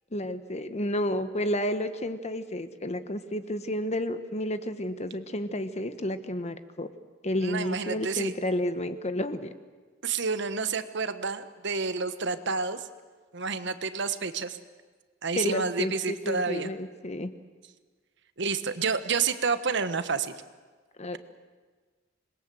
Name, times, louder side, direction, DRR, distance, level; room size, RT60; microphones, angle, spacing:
voice 1, 0.1-6.9 7.2-9.5 15.3-17.3 21.0-21.2, left 1 dB, 35° left, 11 dB, 1.2 m, -31 dB
voice 2, 7.4-8.3 10.0-12.9 13.3-14.6 15.2-16.7 18.4-20.3, right 5 dB, 65° right, 11 dB, 1.3 m, -29 dB
26.5 x 21.5 x 7.8 m, 1.4 s
head